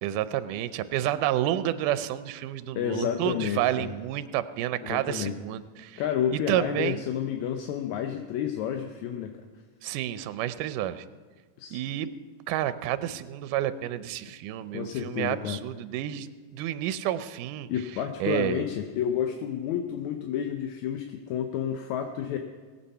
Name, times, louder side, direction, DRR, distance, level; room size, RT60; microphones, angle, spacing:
voice 1, 0.0-6.0 6.3-7.0 9.8-11.1 11.7-12.1 12.5-17.7 18.2-18.6, right 12 dB, 80° right, 12 dB, 2.1 m, -30 dB
voice 2, 2.8-3.9 4.8-5.3 6.0-9.3 11.6-11.8 14.7-15.6 17.7-22.4, left 9 dB, 75° left, 5 dB, 1.9 m, -30 dB
20.0 x 8.4 x 5.5 m, 1.4 s
omnidirectional pair, 3.7 m